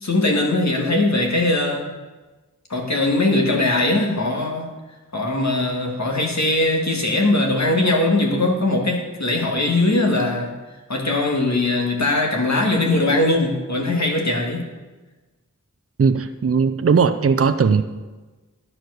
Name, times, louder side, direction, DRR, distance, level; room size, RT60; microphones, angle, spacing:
voice 1, 0.0-1.9 2.7-4.7 5.1-10.5 10.9-14.6, left 2 dB, 60° left, 0 dB, 1.7 m, -20 dB
voice 2, 16.0-17.8, right 5 dB, 45° right, 10 dB, 0.5 m, -18 dB
10.5 x 4.8 x 6.3 m, 1.2 s
wide cardioid pair, 45°, 32 cm